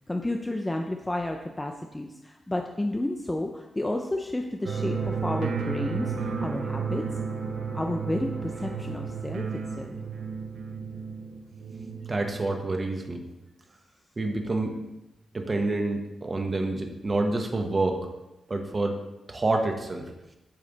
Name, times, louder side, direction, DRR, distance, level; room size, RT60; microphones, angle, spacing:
voice 1, 0.1-7.1 7.7-9.5 9.8-10.0, left 1 dB, 15° left, 3 dB, 0.4 m, -31 dB
sound 1, 4.6-12.8, right 5 dB, 75° right, 0.7 m, -32 dB
voice 2, 12.1-13.2 14.2-14.7 15.3-18.1 18.5-19.0 19.3-20.0, right 2 dB, 30° right, 4 dB, 0.8 m, -27 dB
8.7 x 3.2 x 3.9 m, 0.97 s
cardioid pair, 105°, 0 cm